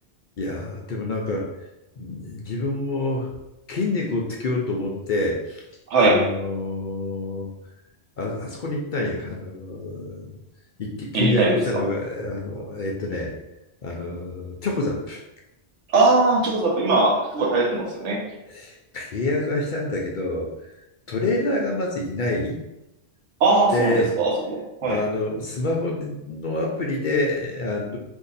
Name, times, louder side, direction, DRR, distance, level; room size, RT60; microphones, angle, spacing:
voice 1, 0.4-1.5 2.0-3.3 3.7-5.6 6.0-7.5 8.2-10.3 10.8-13.3 13.8-15.2 18.5-20.7 21.1-22.6 23.7-24.1 24.8-28.0, left 2 dB, 55° left, -1 dB, 0.6 m, -27 dB
voice 2, 5.9-6.3 11.1-11.6 15.9-18.2 23.4-25.0, right 2 dB, 90° right, -1 dB, 1.1 m, -20 dB
2.7 x 2.6 x 3.9 m, 0.91 s
omnidirectional pair, 1.2 m